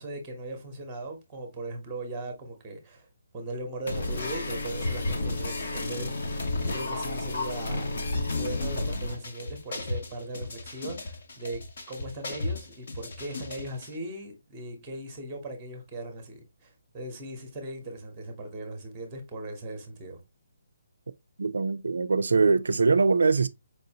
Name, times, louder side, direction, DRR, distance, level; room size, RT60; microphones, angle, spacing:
voice 1, 0.0-3.1 3.3-7.9 8.2-11.6 11.9-20.2, right 1 dB, 10° right, 0.8 m, -39 dB
sound 1, 3.9-13.9, left 2 dB, 45° left, 0.8 m, -32 dB
voice 2, 21.4-23.5, right 4 dB, 85° right, 0.3 m, -22 dB
4.6 x 2.6 x 2.7 m
hypercardioid pair, 180°, 0 cm